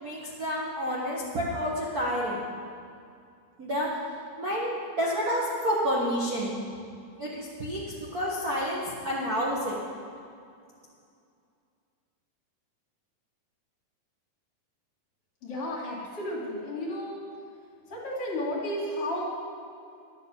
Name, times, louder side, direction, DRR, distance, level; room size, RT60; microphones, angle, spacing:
voice 1, 0.0-2.4 3.6-3.9 4.4-6.6 7.2-7.8 8.1-9.8, equal, 85° right, -6 dB, 0.8 m, -29 dB
voice 2, 15.4-17.2 17.9-19.2, left 1 dB, 40° left, -5 dB, 3.4 m, -33 dB
12.5 x 8.6 x 7.0 m, 2.4 s
omnidirectional pair, 4.1 m